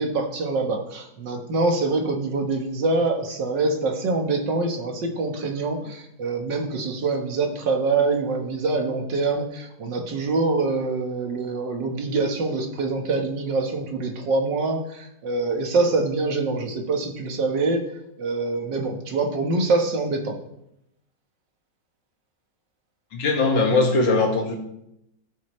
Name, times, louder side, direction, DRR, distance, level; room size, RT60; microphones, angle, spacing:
voice 1, 0.0-17.8 18.2-20.4, right 3 dB, 75° right, 3 dB, 2.0 m, -25 dB
voice 2, 23.1-24.6, left 3 dB, 85° left, 2 dB, 2.4 m, -20 dB
17.5 x 6.5 x 3.2 m, 0.79 s
omnidirectional pair, 2.0 m